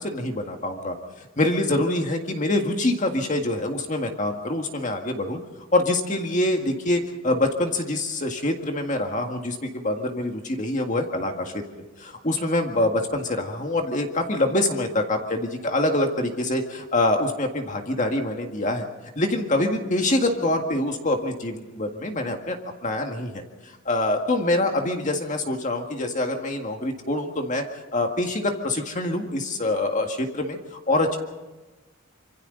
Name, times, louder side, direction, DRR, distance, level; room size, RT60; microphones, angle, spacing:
voice 1, 0.0-5.4 5.7-11.6 12.0-18.9 19.2-22.6 22.8-27.7 27.9-31.2, left 1 dB, 40° left, 3 dB, 1.9 m, -25 dB
26.0 x 25.0 x 4.0 m, 1.1 s
head